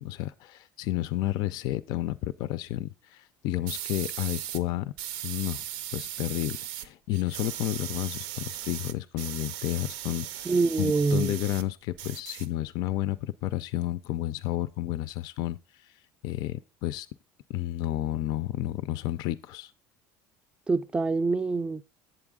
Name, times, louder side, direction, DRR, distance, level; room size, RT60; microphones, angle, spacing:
voice 1, 0.0-4.9 5.2-5.6 5.9-15.9 16.2-17.1 17.5-19.7, left 15 dB, 60° left, 0.4 m, -31 dB
sound 1, 3.7-4.6 5.0-6.9 7.1-11.6 11.9-12.9, right 12 dB, 75° right, 0.5 m, -38 dB
voice 2, 10.5-11.4 20.7-21.8, right 3 dB, 15° right, 0.4 m, -25 dB
8.0 x 7.8 x 3.6 m
cardioid pair, 130°, 8 cm